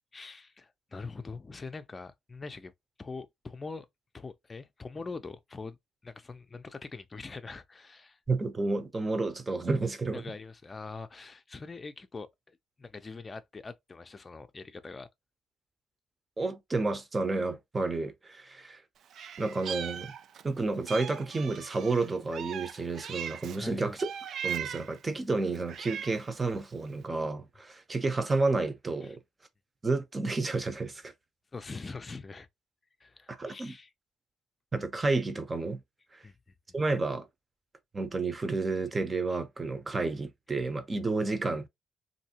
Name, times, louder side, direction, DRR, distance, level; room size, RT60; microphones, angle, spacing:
voice 1, 0.1-2.7 3.0-3.9 4.1-5.8 6.0-8.2 10.1-15.1 23.6-23.9 29.0-29.2 31.5-32.5 33.0-33.9 36.2-36.3, left 4 dB, 30° left, 0.5 m, -43 dB
voice 2, 8.3-10.2 16.4-18.8 19.4-20.1 20.4-24.1 24.4-29.2 29.8-31.1 33.3-33.7 34.7-35.8 36.7-37.3 37.9-41.7, right 3 dB, 25° right, 0.8 m, -30 dB
Meow, 19.1-20.5 20.9-23.6 24.0-25.0 25.5-26.4, right 8 dB, 65° right, 0.3 m, -39 dB
3.1 x 2.7 x 2.8 m
cardioid pair, 90°, 0 cm